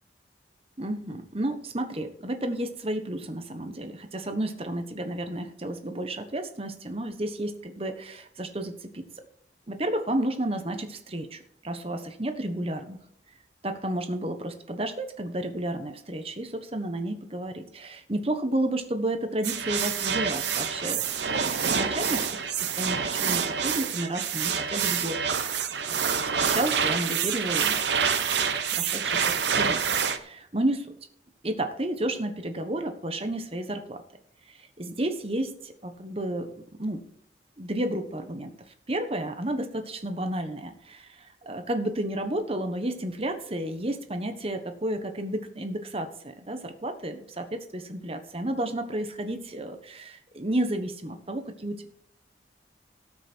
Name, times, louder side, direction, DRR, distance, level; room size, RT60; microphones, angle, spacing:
voice 1, 0.8-9.0 9.7-13.0 13.6-21.0 21.4-27.8 28.4-29.2 29.5-29.8 30.2-30.9 31.4-34.0 34.5-36.5 36.8-37.1 37.6-38.5 38.9-51.9, right 1 dB, 35° right, 7 dB, 1.2 m, -32 dB
sound 1, 19.4-30.2, right 7 dB, 80° right, 1.0 m, -27 dB
18.0 x 6.1 x 4.5 m, 0.67 s
head